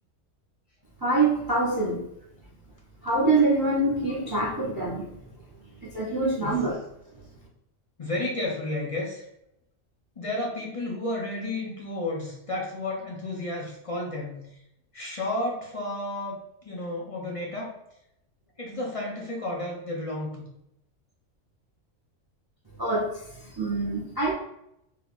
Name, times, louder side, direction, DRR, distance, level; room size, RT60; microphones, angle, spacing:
voice 1, 1.0-2.1 3.0-5.0 5.8-6.8 22.8-23.1 23.4-24.3, right 2 dB, 30° right, -7 dB, 0.4 m, -25 dB
voice 2, 8.0-9.2 10.2-14.4 14.9-17.7 18.6-20.4, left 1 dB, 40° left, -3 dB, 0.5 m, -32 dB
3.5 x 2.9 x 2.4 m, 0.80 s
omnidirectional pair, 1.3 m